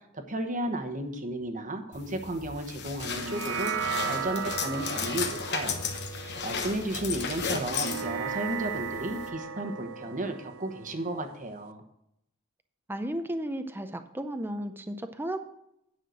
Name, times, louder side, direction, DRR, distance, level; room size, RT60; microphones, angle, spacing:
voice 1, 0.1-11.8, right 1 dB, 40° right, 6 dB, 1.1 m, -34 dB
sound 1, 1.9-9.3, left 5 dB, 55° left, 1.1 m, -35 dB
sound 2, 3.0-11.7, right 6 dB, 75° right, 0.7 m, -36 dB
voice 2, 12.9-15.4, right 1 dB, 10° right, 8 dB, 0.5 m, -34 dB
9.4 x 5.7 x 6.3 m, 0.79 s
head